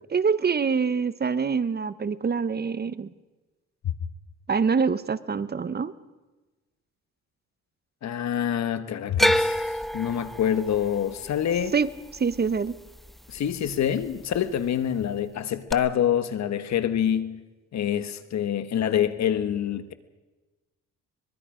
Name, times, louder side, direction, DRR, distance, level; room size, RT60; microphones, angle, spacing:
voice 1, 0.1-3.1 4.5-5.9 11.7-11.9 12.2-12.8, right 5 dB, 35° right, 0.9 m, -25 dB
voice 2, 8.0-9.6 9.9-11.7 13.3-17.4 17.7-19.9, left 9 dB, 65° left, 1.5 m, -26 dB
sound 1, 9.2-13.4 13.7-14.4 15.7-15.8, equal, ahead, 0.8 m, -28 dB
24.0 x 22.5 x 5.1 m
cardioid pair, 90°, 30 cm